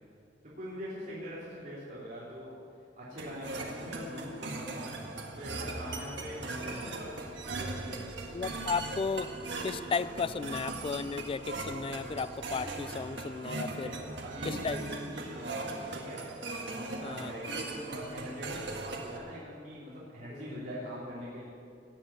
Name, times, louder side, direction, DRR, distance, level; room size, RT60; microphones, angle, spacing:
voice 1, 0.5-2.5 2.9-8.0 13.8-16.2 17.0-21.4, equal, 45° right, 3.6 m, -42 dB
sound 1, 3.2-19.2, right 2 dB, 70° right, 1.8 m, -39 dB
voice 2, 8.3-9.4 9.6-13.9 14.4-14.8 17.0-17.3 20.3-20.5, left 5 dB, 30° left, 0.3 m, -34 dB
18.0 x 7.7 x 8.7 m
head